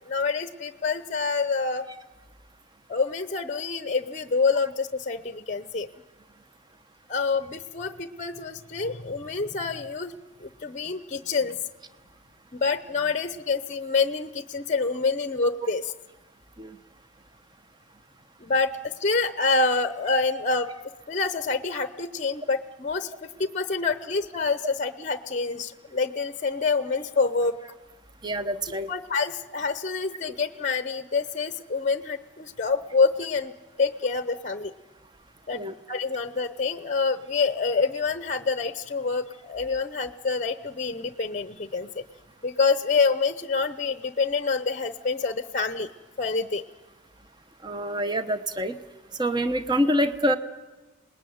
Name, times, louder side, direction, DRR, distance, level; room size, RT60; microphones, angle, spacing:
voice 1, 0.1-1.8 2.9-5.9 7.1-10.1 10.4-11.6 12.5-15.9 18.4-20.7 21.1-27.6 28.9-33.5 33.8-34.7 35.5-42.0 42.4-45.9 46.2-46.6, left 4 dB, 35° left, 12 dB, 0.7 m, -27 dB
voice 2, 28.2-28.9 35.5-35.7 47.6-48.8 49.2-50.4, equal, 20° right, 10 dB, 0.9 m, -26 dB
27.0 x 20.0 x 9.4 m, 1.3 s
head